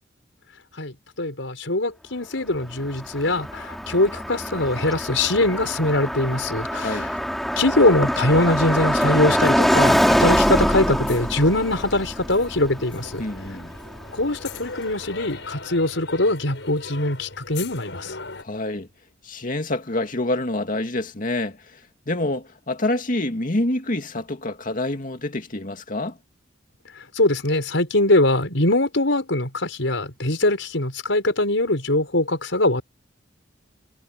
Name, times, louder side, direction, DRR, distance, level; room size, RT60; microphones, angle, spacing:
voice 1, 0.8-7.1 7.6-13.2 14.1-18.1 27.1-32.8, left 2 dB, 85° left, 5.1 m, -22 dB
Car passing by, 2.6-14.6, equal, ahead, 3.7 m, -24 dB
voice 2, 6.7-7.1 13.2-13.7 18.4-18.9 19.2-21.6 22.1-26.2, left 1 dB, 45° left, 2.3 m, -27 dB
sound 1, 8.2-18.4, left 3 dB, 70° left, 7.7 m, -40 dB
head